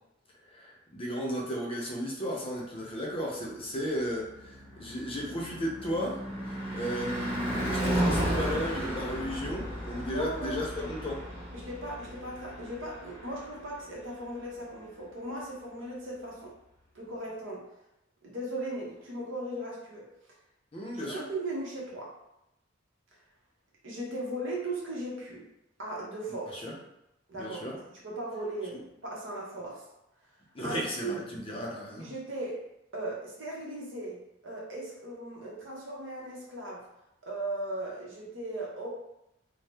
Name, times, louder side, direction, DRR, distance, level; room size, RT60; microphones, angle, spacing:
voice 1, 0.5-6.2 6.7-11.2 20.7-21.2 26.5-26.7 27.3-27.8 30.5-32.1, equal, 30° left, -3 dB, 0.6 m, -34 dB
Car passing by / Truck / Engine, 3.8-14.1, equal, 30° right, 1.4 m, -34 dB
voice 2, 10.1-10.9 11.5-16.5 16.9-17.6 18.2-20.1 20.9-22.1 23.8-25.5 25.8-26.6 27.3-29.8 30.6-31.2 32.0-32.6 32.9-36.8 37.2-38.9, right 1 dB, 70° right, -3 dB, 0.9 m, -37 dB
2.7 x 2.0 x 3.3 m, 0.86 s
head